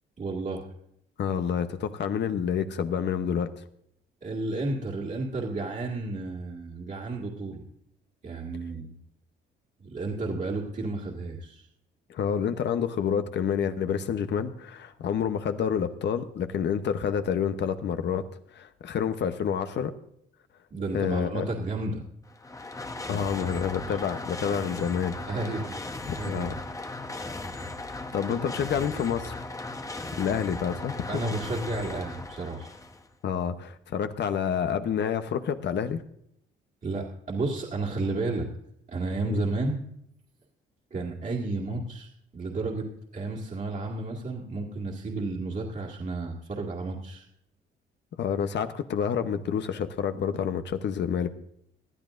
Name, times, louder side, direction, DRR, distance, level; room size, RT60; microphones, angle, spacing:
voice 1, 0.2-0.7 4.2-7.6 8.2-8.9 9.8-11.6 20.7-22.0 23.2-23.5 23.9-24.0 25.3-25.8 26.2-26.5 31.1-32.7 36.8-38.5 38.9-39.8 40.9-42.9 43.1-47.3, right 2 dB, 40° right, -2 dB, 2.1 m, -32 dB
voice 2, 1.2-3.5 12.1-18.3 18.5-19.9 20.9-21.5 23.1-25.4 26.1-26.6 28.1-29.3 30.1-31.2 33.2-36.0 39.3-39.4 48.2-51.3, left 7 dB, 60° left, 9 dB, 0.9 m, -28 dB
sound 1, 22.2-33.1, left 2 dB, 15° left, 0.9 m, -37 dB
20.0 x 12.0 x 2.5 m, 0.73 s
cardioid pair, 90°, 20 cm